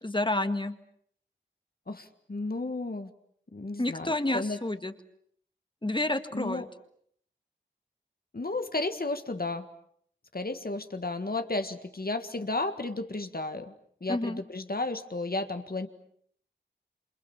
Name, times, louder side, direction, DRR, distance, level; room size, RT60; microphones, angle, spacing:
voice 1, 0.0-0.7 3.8-4.9 5.8-6.7 14.1-14.4, left 2 dB, 25° left, 9 dB, 1.9 m, -29 dB
voice 2, 1.9-3.1 3.5-4.6 6.3-6.7 8.3-9.7 10.3-13.7 14.0-15.9, left 2 dB, 50° left, 8 dB, 1.7 m, -33 dB
28.0 x 27.5 x 7.2 m, 0.66 s
wide cardioid pair, 70°, 20 cm